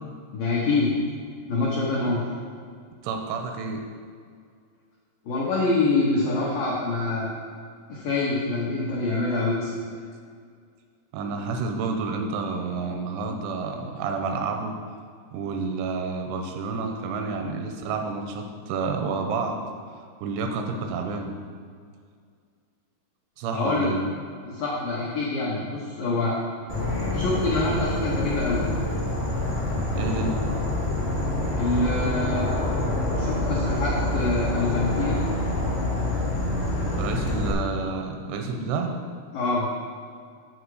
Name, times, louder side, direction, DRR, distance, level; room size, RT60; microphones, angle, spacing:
voice 1, 0.3-0.9 1.5-2.3 5.3-7.3 7.9-9.7 23.5-23.9 24.4-26.4 27.1-28.7 31.6-32.5 33.2-35.2 39.3-39.7, left 3 dB, 80° left, -5 dB, 2.0 m, -25 dB
voice 2, 3.0-3.8 11.1-14.7 15.3-19.6 20.2-21.3 23.4-24.0 30.0-30.4 37.0-38.9, right 4 dB, 85° right, 4 dB, 2.9 m, -29 dB
Insect / Frog, 26.7-37.5, left 1 dB, 35° left, 0.9 m, -26 dB
8.8 x 7.1 x 4.8 m, 2.1 s
omnidirectional pair, 5.6 m